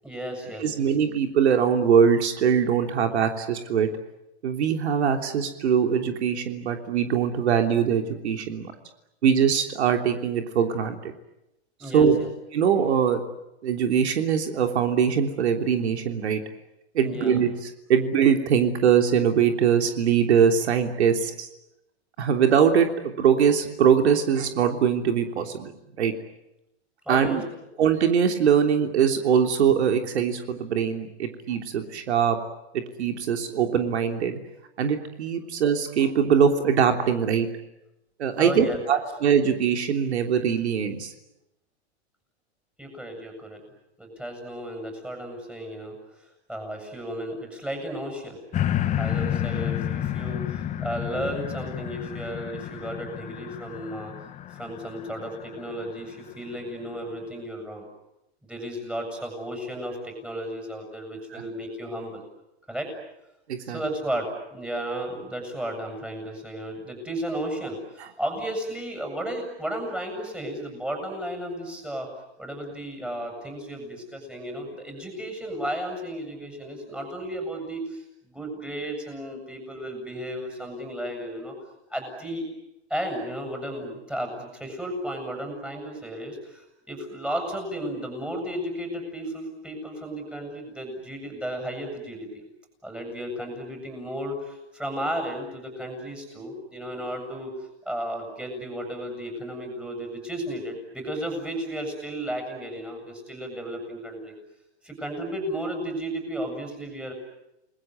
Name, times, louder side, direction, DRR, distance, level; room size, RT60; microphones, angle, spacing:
voice 1, 0.0-0.8 11.8-12.3 17.0-17.4 27.0-27.4 38.4-38.8 42.8-43.6 44.0-46.0 46.5-48.4 49.0-54.1 54.5-57.9 58.4-62.2 62.7-62.9 63.7-72.1 72.4-81.5 81.9-82.5 82.9-92.3 92.8-97.5 97.9-104.3 104.8-107.1, right 1 dB, 5° right, 5 dB, 7.8 m, -34 dB
voice 2, 0.6-3.9 4.4-8.7 9.2-11.1 11.9-12.2 12.5-13.2 13.6-16.4 16.9-21.5 22.2-25.7 26.0-26.1 27.1-27.4 27.8-32.4 32.7-34.4 34.8-37.5 38.2-41.1 61.3-61.4 63.5-63.8, right 7 dB, 75° right, 5 dB, 3.3 m, -22 dB
sound 1, 48.5-55.9 56.5-56.6, left 11 dB, 20° left, 1.5 m, -30 dB
30.0 x 21.0 x 9.5 m, 0.90 s
hypercardioid pair, 140°, 33 cm